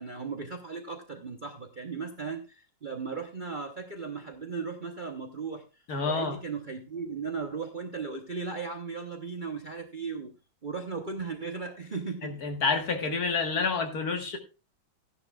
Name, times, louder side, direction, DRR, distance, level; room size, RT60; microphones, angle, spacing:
voice 1, 0.0-10.3 10.6-12.4, right 5 dB, 40° right, 0.8 m, -37 dB
voice 2, 5.9-6.4 12.2-14.4, left 4 dB, 55° left, 1.8 m, -28 dB
14.0 x 10.5 x 2.3 m
omnidirectional pair, 2.0 m